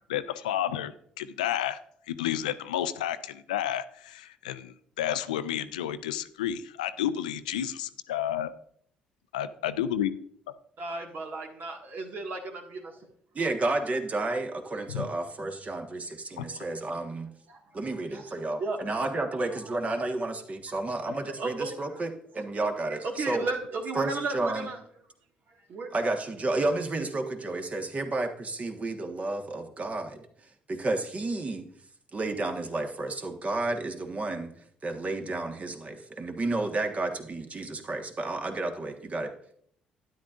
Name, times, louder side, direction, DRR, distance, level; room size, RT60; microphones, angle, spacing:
voice 1, 0.1-1.8 2.1-8.5 9.3-10.1 14.9-15.1 16.4-16.6, left 11 dB, 80° left, 12 dB, 0.5 m, -31 dB
voice 2, 10.8-13.1 17.5-18.3 18.6-18.8 19.5-20.1 21.2-22.0 22.8-24.8 25.5-25.9 36.2-36.3, right 3 dB, 50° right, 3 dB, 1.8 m, -35 dB
voice 3, 13.3-17.3 17.7-22.1 22.3-23.5 23.9-24.7 25.9-30.2 30.7-31.6 32.1-34.6 34.8-39.3, right 2 dB, 35° right, 5 dB, 1.5 m, -31 dB
12.5 x 9.8 x 2.5 m, 0.65 s
hypercardioid pair, 50°, 4 cm